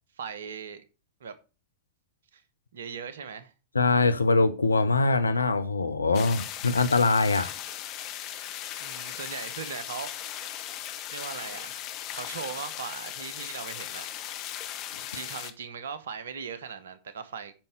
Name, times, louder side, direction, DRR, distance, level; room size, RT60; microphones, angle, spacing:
voice 1, 0.2-0.8 1.2-1.3 2.3-2.4 2.7-3.5 8.8-10.4 11.1-11.8 12.1-14.1 15.1-17.5, right 6 dB, 65° right, 1.0 m, -39 dB
voice 2, 3.7-7.5, left 3 dB, 80° left, 0.6 m, -23 dB
sound 1, 6.1-15.5, left 11 dB, 40° left, 1.1 m, -38 dB
8.9 x 5.4 x 5.9 m
figure-of-eight pair, 90°, 0 cm